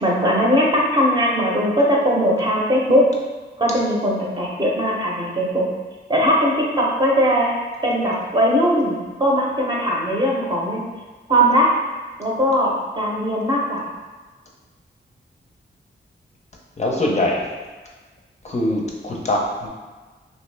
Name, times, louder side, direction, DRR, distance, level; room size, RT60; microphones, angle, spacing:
voice 1, 0.0-3.0 3.6-5.6 6.1-7.5 7.8-10.8 11.3-11.7 12.2-13.9, equal, 25° right, -3 dB, 0.7 m, -19 dB
voice 2, 16.8-17.5 18.4-19.7, left 1 dB, 35° left, -2 dB, 0.5 m, -22 dB
3.0 x 2.7 x 3.2 m, 1.3 s
cardioid pair, 75°, 19 cm